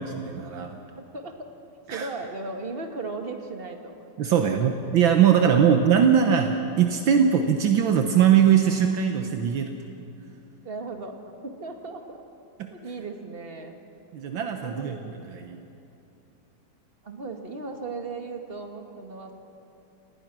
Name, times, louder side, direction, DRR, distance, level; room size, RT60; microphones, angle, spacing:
voice 1, 0.0-0.8 1.9-2.1 4.2-9.7 12.6-12.7 14.1-15.0 15.3-15.7, right 8 dB, 75° right, 5 dB, 1.8 m, -21 dB
voice 2, 0.9-1.5 1.9-4.7 5.3-5.5 10.6-12.2 12.7-13.8 14.6-15.4 17.0-19.3, right 3 dB, 30° right, 4 dB, 1.8 m, -37 dB
28.0 x 19.5 x 6.1 m, 2.8 s
omnidirectional pair, 2.2 m